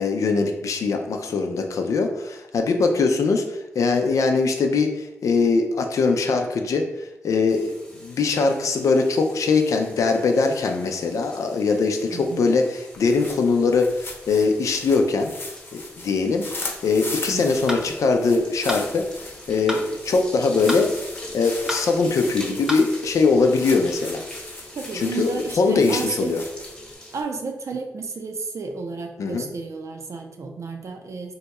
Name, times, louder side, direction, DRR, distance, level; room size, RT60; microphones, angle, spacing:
voice 1, 0.0-6.8 7.2-7.7 8.0-15.3 15.7-19.1 19.5-20.9 21.3-24.2 24.9-26.4 29.2-29.5, left 4 dB, 80° left, 4 dB, 0.5 m, -21 dB
sound 1, 7.5-27.2, left 1 dB, 15° left, 1.1 m, -43 dB
voice 2, 12.1-12.4 17.3-17.7 24.8-26.3 27.1-31.3, right 4 dB, 65° right, 3 dB, 0.5 m, -32 dB
sound 2, 12.9-26.9, left 2 dB, 45° left, 0.8 m, -38 dB
sound 3, 17.7-17.9 18.7-18.9 19.7-19.9 20.7-20.9 21.7-21.8 22.7-22.9, equal, 10° right, 0.7 m, -28 dB
2.7 x 2.3 x 4.1 m, 0.94 s
cardioid pair, 60°, 5 cm